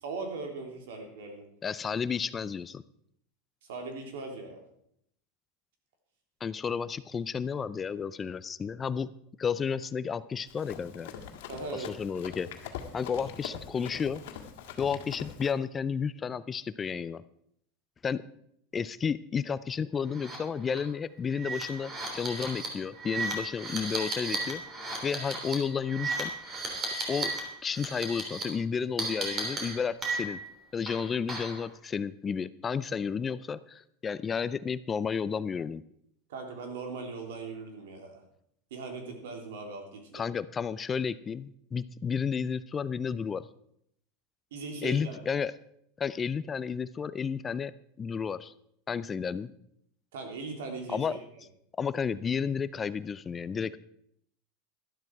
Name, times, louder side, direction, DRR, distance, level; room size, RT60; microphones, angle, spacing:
voice 1, 0.0-1.4 3.7-4.6 11.5-11.9 36.3-38.2 38.7-40.2 44.5-45.2 50.1-51.2, right 3 dB, 90° right, 3 dB, 3.3 m, -39 dB
voice 2, 1.6-2.8 6.4-9.1 9.4-11.1 11.7-12.5 12.9-14.2 14.8-17.2 18.0-18.2 18.7-24.6 25.0-26.3 27.1-27.3 27.6-30.4 30.7-35.8 40.1-43.4 44.8-45.5 46.0-47.7 48.0-48.5 48.9-49.5 50.9-51.2 51.8-53.8, left 6 dB, 20° left, 16 dB, 0.4 m, -32 dB
Run, 10.5-15.5, left 8 dB, 75° left, 2.0 m, -43 dB
sound 1, 20.1-20.4 20.7-20.8 21.3-27.4 27.7-28.4 29.0-30.5 30.9-31.6, right 3 dB, 25° right, 3.4 m, -35 dB
12.5 x 12.0 x 4.7 m, 0.71 s
supercardioid pair, 150°, 0 cm